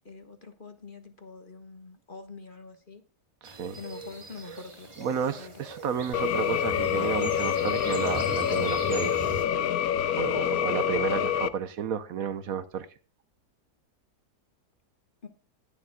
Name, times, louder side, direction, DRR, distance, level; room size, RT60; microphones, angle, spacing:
voice 1, 0.0-3.0 3.7-5.6 10.6-10.8 15.2-15.3, left 4 dB, 35° left, 1.3 m, -45 dB
sound 1, 3.4-9.5, right 1 dB, 20° right, 1.3 m, -40 dB
voice 2, 3.4-3.8 5.0-9.3 10.1-12.9, right 7 dB, 70° right, 1.1 m, -32 dB
sound 2, 6.1-11.5, left 10 dB, 70° left, 1.1 m, -27 dB
20.0 x 7.1 x 2.2 m
omnidirectional pair, 1.7 m